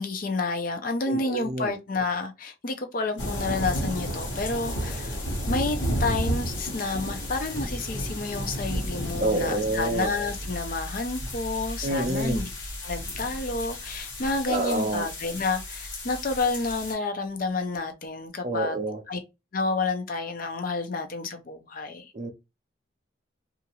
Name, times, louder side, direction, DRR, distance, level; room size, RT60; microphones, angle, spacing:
voice 1, 0.0-5.2 5.5-12.5 12.8-18.8 19.1-19.2 19.5-22.1, left 3 dB, 45° left, 0.5 m, -30 dB
voice 2, 1.1-1.7 9.2-10.1 11.8-12.4 14.5-15.1 18.4-19.0 22.1-22.3, right 2 dB, 35° right, 0.5 m, -27 dB
sound 1, 3.2-16.9, equal, 70° left, 1.1 m, -32 dB
2.8 x 2.5 x 2.8 m
head